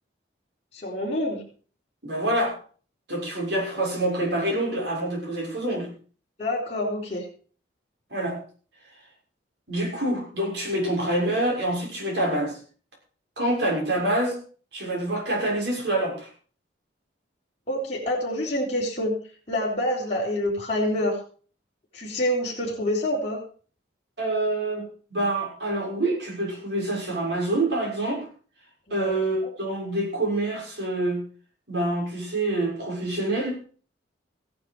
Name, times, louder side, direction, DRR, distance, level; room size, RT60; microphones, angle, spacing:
voice 1, 0.7-1.4 6.4-7.2 17.7-19.1 19.5-21.2 21.9-23.4 29.0-29.1 29.4-29.5, left 1 dB, 35° left, -6 dB, 4.1 m, -27 dB
voice 2, 2.0-2.6 3.1-5.9 8.1-8.4 9.7-12.6 13.4-14.4 14.7-16.3 24.2-28.2 28.9-31.2 31.7-33.6, right 1 dB, 65° right, -1 dB, 6.8 m, -26 dB
16.0 x 10.5 x 4.8 m, 0.42 s
head